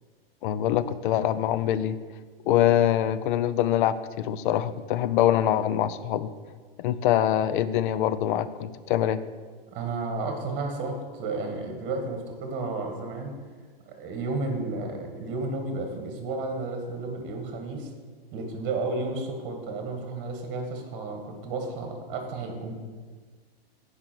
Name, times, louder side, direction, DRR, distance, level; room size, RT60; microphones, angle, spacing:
voice 1, 0.4-2.0 2.5-6.3 6.8-9.2, left 11 dB, 55° left, 14 dB, 0.6 m, -24 dB
voice 2, 9.7-13.3 13.9-17.9 18.3-22.7, right 3 dB, 40° right, 4 dB, 1.7 m, -32 dB
10.5 x 5.0 x 4.6 m, 1.5 s
hypercardioid pair, 115°, 30 cm